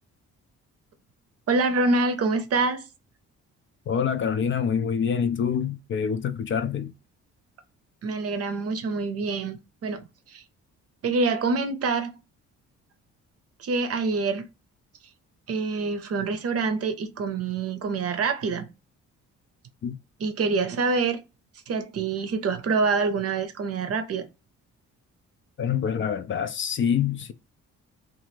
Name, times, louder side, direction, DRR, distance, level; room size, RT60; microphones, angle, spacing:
voice 1, 1.5-2.8 8.0-10.0 10.3-10.4 11.0-12.1 13.6-14.4 15.5-18.7 20.2-21.2 21.7-24.2, right 4 dB, 55° right, 0.6 m, -26 dB
voice 2, 3.9-6.9 19.8-20.0 25.6-27.3, left 7 dB, 40° left, 0.4 m, -26 dB
2.8 x 2.4 x 3.0 m
cardioid pair, 90°, 30 cm